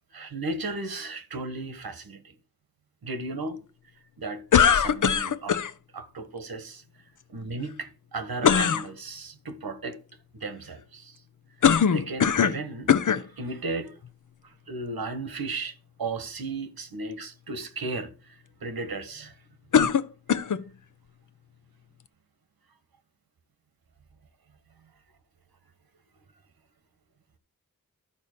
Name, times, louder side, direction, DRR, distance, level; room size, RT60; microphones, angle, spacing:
voice 1, 0.1-2.3 3.0-3.6 4.2-5.6 5.9-6.8 7.3-10.0 10.3-11.2 11.9-13.9 14.4-19.3, right 3 dB, 85° right, 1.4 m, -35 dB
sound 1, 4.5-5.7 8.4-8.9 11.6-12.6 12.9-13.3 14.1-14.2 19.7-20.6, left 7 dB, 60° left, 0.7 m, -21 dB
11.5 x 4.1 x 6.6 m
cardioid pair, 50°, 36 cm